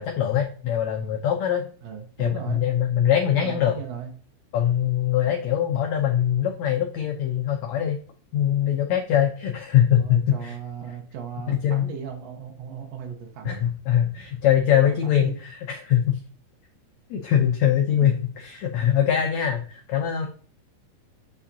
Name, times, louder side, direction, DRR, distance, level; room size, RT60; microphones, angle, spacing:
voice 1, 0.0-1.6 2.2-3.8 4.5-8.0 8.3-10.6 11.5-11.9 13.4-16.2 17.1-18.1 18.4-20.3, left 10 dB, 80° left, 3 dB, 1.6 m, -22 dB
voice 2, 1.8-2.6 3.3-4.1 10.0-13.6 14.8-15.4 17.9-18.2, right 8 dB, 65° right, 1 dB, 1.7 m, -37 dB
8.6 x 5.7 x 2.7 m, 0.42 s
omnidirectional pair, 4.1 m